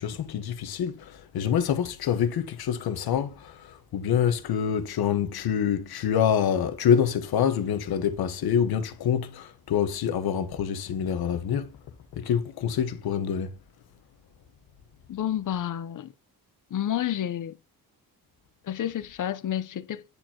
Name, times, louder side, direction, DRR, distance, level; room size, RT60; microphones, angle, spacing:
voice 1, 0.0-11.7 12.1-13.5, left 8 dB, 80° left, 1.3 m, -26 dB
voice 2, 15.1-16.1 16.7-17.6 18.6-20.0, left 11 dB, 55° left, 0.8 m, -30 dB
10.0 x 4.4 x 2.9 m
cardioid pair, 120°, 37 cm